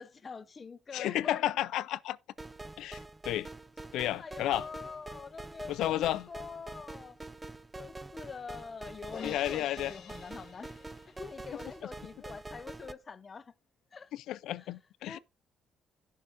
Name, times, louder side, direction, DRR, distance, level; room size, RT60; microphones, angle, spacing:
voice 1, 0.0-1.3 4.2-7.2 7.8-10.7 11.2-13.5 13.9-14.1 14.5-14.7 15.1-15.2, left 5 dB, 40° left, 0.7 m, -45 dB
voice 2, 0.9-2.2 2.8-3.0 3.2-3.5 3.9-4.7 5.7-6.3 9.2-9.9 14.1-15.2, left 13 dB, 85° left, 0.3 m, -32 dB
sound 1, 2.4-12.9, right 2 dB, 20° right, 0.4 m, -46 dB
Crash cymbal, 9.1-11.4, left 6 dB, 65° left, 1.5 m, -48 dB
16.5 x 5.5 x 2.5 m
cardioid pair, 90°, 0 cm